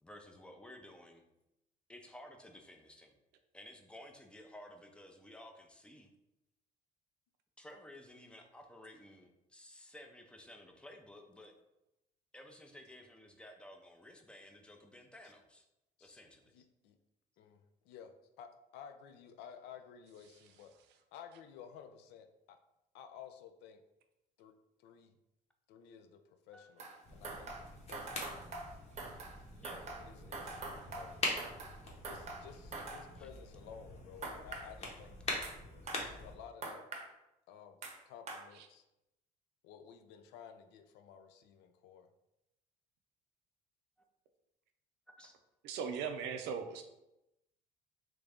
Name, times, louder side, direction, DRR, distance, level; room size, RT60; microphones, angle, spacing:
voice 1, 0.0-1.2 1.9-3.2 3.5-6.1 7.6-11.5 12.3-15.7 16.0-16.6 26.5-26.8 29.6-29.8 33.2-33.3 45.1-45.3, left 1 dB, 5° left, 3 dB, 0.5 m, -54 dB
voice 2, 16.5-17.0 17.4-18.1 18.4-20.7 21.1-22.6 22.9-23.8 24.4-24.5 24.8-25.1 25.7-26.2 26.5-26.8 27.1-27.5 27.9-28.3 29.8-31.2 32.0-35.2 36.2-36.8 37.5-37.8 38.1-38.8 39.6-42.1, left 8 dB, 90° left, 7 dB, 0.4 m, -54 dB
sound 1, 26.8-27.0 27.2-29.4 29.6-31.8 32.0-33.0 34.2-34.7 35.4-35.5 35.9-36.0 36.6-37.1 37.8-37.9 38.3-38.4, right 3 dB, 40° right, 0.7 m, -44 dB
sound 2, 27.0-36.3, left 2 dB, 40° left, 0.9 m, -44 dB
voice 3, 45.6-46.8, right 6 dB, 85° right, 6 dB, 0.5 m, -38 dB
3.2 x 2.5 x 3.4 m, 0.90 s
cardioid pair, 110°, 17 cm